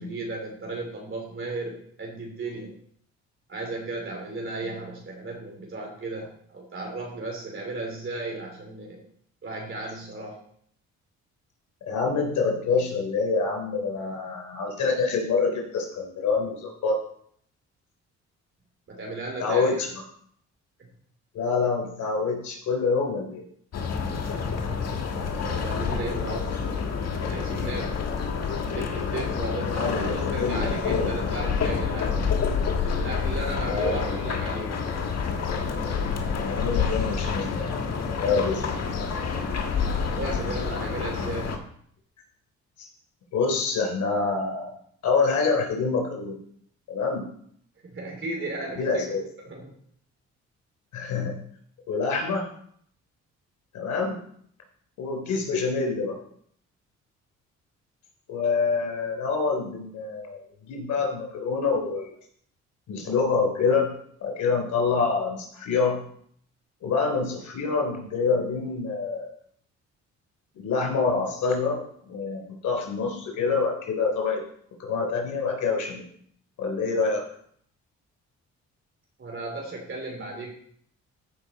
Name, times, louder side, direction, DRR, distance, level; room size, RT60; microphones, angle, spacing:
voice 1, 0.0-2.7 3.5-9.0 9.4-10.4 18.9-19.9 25.2-26.9 27.2-28.0 28.7-32.2 32.8-34.8 40.1-41.6 47.8-49.1 49.4-49.7 79.2-80.5, right 2 dB, 40° right, -1 dB, 3.0 m, -35 dB
voice 2, 11.9-17.0 19.4-19.9 21.3-23.4 29.7-31.1 33.7-34.2 36.4-37.9 38.2-38.7 41.1-41.2 42.8-42.9 43.3-44.7 45.0-46.4 46.9-47.3 48.8-49.2 50.9-51.4 51.9-52.4 53.7-54.2 55.0-56.2 58.3-62.1 62.9-63.9 64.2-66.0 66.8-69.3 70.6-74.4 74.8-76.0 76.6-77.2, left 4 dB, 75° left, 1 dB, 3.6 m, -26 dB
sound 1, 23.7-41.6, left 6 dB, 55° left, 1.7 m, -28 dB
14.5 x 5.6 x 4.1 m, 0.63 s
cardioid pair, 90°, 30 cm